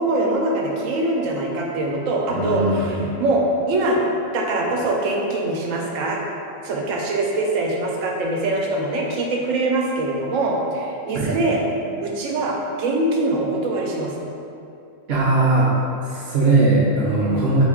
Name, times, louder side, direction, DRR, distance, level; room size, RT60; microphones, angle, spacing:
voice 1, 0.0-4.0 4.3-6.2 6.6-11.6 12.0-14.1 17.2-17.5, right 2 dB, 80° right, -1 dB, 1.0 m, -23 dB
voice 2, 2.3-3.1 11.1-11.3 15.1-15.7 16.0-17.6, right 2 dB, 65° right, -6 dB, 0.7 m, -19 dB
3.7 x 2.3 x 3.5 m, 2.6 s
omnidirectional pair, 1.3 m